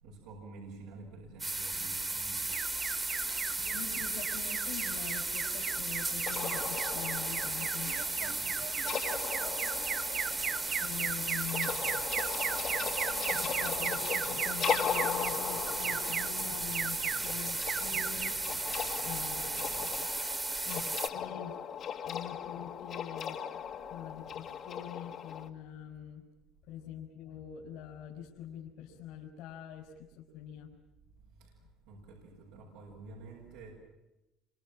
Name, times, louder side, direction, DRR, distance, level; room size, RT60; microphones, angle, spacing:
voice 1, 0.0-2.4 8.2-8.6 11.1-11.2 31.4-31.5 31.8-33.7, right 3 dB, 90° right, -2 dB, 7.5 m, -49 dB
sound 1, 1.4-21.1, right 2 dB, 15° right, 2.1 m, -35 dB
Alarm, 2.5-20.1, right 9 dB, 50° right, 1.4 m, -39 dB
voice 2, 3.5-7.9 10.8-11.7 13.3-18.4 19.0-19.9 20.6-21.5 22.0-23.4 23.9-26.2 26.7-30.7, left 9 dB, 70° left, 0 dB, 4.8 m, -44 dB
sound 2, 6.3-25.5, left 8 dB, 45° left, 2.1 m, -38 dB
28.0 x 26.5 x 7.5 m, 0.97 s
cardioid pair, 130°, 0 cm